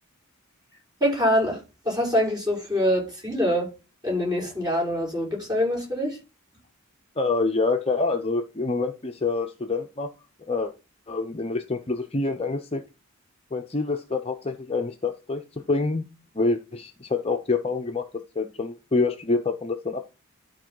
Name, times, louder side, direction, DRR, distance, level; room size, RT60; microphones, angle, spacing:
voice 1, 1.0-1.6 1.8-3.7 4.0-6.2, equal, 15° right, 6.3 m, -24 dB
voice 2, 7.2-10.1 10.5-10.7 11.1-12.8 13.5-16.0 16.3-18.0 18.4-20.0, left 3 dB, 25° left, 0.6 m, -26 dB
12.5 x 4.6 x 4.6 m
head